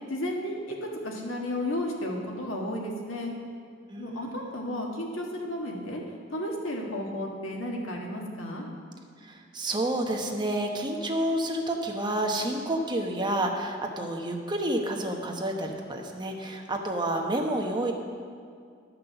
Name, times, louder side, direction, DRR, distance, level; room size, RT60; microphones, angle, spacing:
voice 1, 0.1-0.8 1.0-3.3 4.0-6.0 6.3-8.6, left 1 dB, 85° left, 0 dB, 1.7 m, -33 dB
voice 2, 3.9-4.5 9.2-17.9, right 1 dB, 25° right, 2 dB, 1.0 m, -29 dB
11.5 x 6.0 x 6.8 m, 2.2 s
head